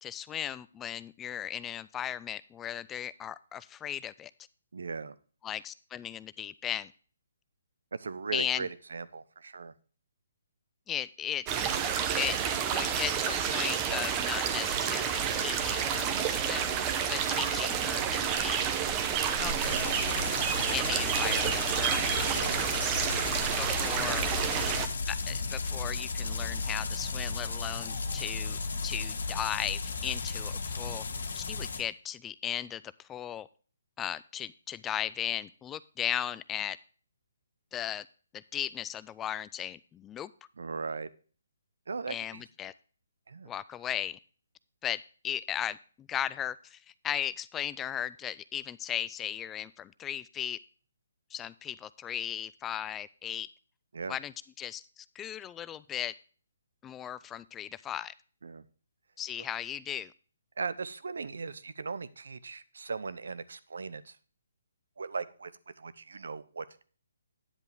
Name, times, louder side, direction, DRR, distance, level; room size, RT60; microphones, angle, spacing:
voice 1, 0.0-4.3 5.4-6.9 8.3-8.7 10.9-11.4 12.2-12.4 12.7-18.7 19.3-20.0 20.7-22.3 23.6-24.3 25.1-31.0 31.3-33.5 34.0-36.8 37.7-38.1 38.3-40.3 42.1-42.7 43.5-44.2 44.8-50.6 51.3-53.5 54.1-56.1 56.8-58.1 59.2-60.1, left 10 dB, 15° left, 17 dB, 0.3 m, -36 dB
voice 2, 4.7-5.1 7.9-9.7 22.3-22.6 40.6-41.1 41.9-42.4 43.3-43.5 53.9-54.2 58.4-58.6 60.6-64.2 65.0-65.5 65.8-66.8, right 4 dB, 75° right, 16 dB, 0.8 m, -38 dB
sound 1, 11.5-24.9, right 8 dB, 20° right, 0.9 m, -29 dB
sound 2, 19.6-31.8, left 4 dB, 70° left, 1.5 m, -34 dB
9.9 x 8.1 x 3.4 m, 0.40 s
hypercardioid pair, 150°, 0 cm